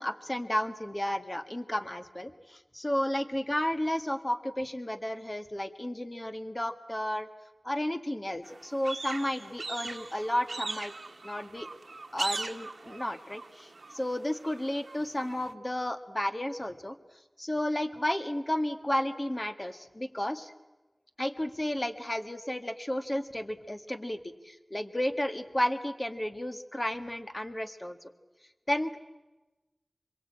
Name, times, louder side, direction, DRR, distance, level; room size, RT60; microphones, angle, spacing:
voice 1, 0.0-7.3 7.6-10.9 11.2-11.7 12.1-17.0 17.4-20.5 21.2-24.2 24.4-28.0 28.7-29.0, left 1 dB, 30° left, 8 dB, 1.8 m, -32 dB
sound 1, 8.4-15.5, right 3 dB, 85° right, 1.0 m, -40 dB
26.0 x 23.0 x 8.7 m, 1.1 s
wide cardioid pair, 50°, 0 cm